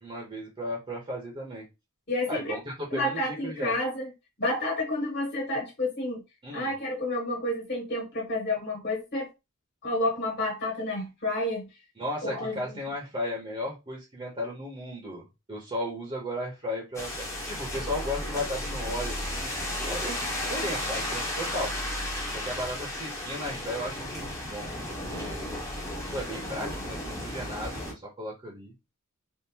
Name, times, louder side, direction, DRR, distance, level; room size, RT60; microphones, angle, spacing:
voice 1, 0.0-1.7 2.3-3.8 6.4-6.7 12.0-19.5 19.8-21.7 22.3-24.7 25.1-25.5 26.1-28.7, left 1 dB, 25° right, 0.8 m, -35 dB
voice 2, 2.1-2.6 2.9-4.1 4.4-6.2 6.5-9.3 9.8-11.7 12.2-12.8, left 1 dB, 45° left, 1.4 m, -30 dB
sound 1, 16.9-27.9, left 1 dB, 15° left, 0.8 m, -34 dB
3.6 x 2.5 x 2.8 m
head